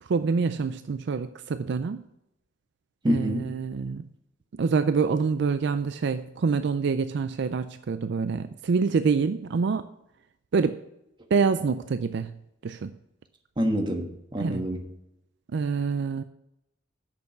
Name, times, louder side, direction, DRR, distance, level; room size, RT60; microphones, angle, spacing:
voice 1, 0.0-2.0 3.1-4.0 4.6-9.9 10.5-10.8 11.3-12.3 12.6-12.9 14.4-14.6 15.5-16.2, right 5 dB, 60° right, 11 dB, 0.4 m, -26 dB
voice 2, 3.0-3.5 13.6-14.9, equal, 25° right, 4 dB, 1.3 m, -27 dB
8.4 x 6.8 x 5.8 m, 0.84 s
head